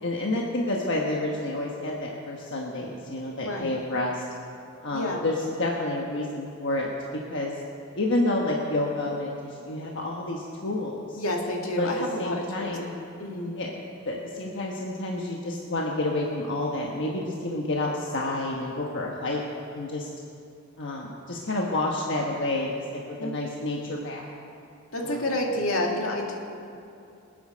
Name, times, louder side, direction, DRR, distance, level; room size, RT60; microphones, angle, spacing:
voice 1, 0.0-4.2 4.8-6.9 7.3-7.6 7.9-11.2 11.8-12.9 13.5-13.7 14.0-19.4 19.7-20.1 20.8-24.3 25.0-25.2, left 2 dB, 60° left, -1 dB, 1.3 m, -29 dB
voice 2, 4.9-5.2 11.2-12.8 13.2-13.6 23.2-23.3 24.9-26.3, left 1 dB, 75° left, 0 dB, 2.2 m, -29 dB
26.5 x 9.2 x 5.2 m, 2.6 s
head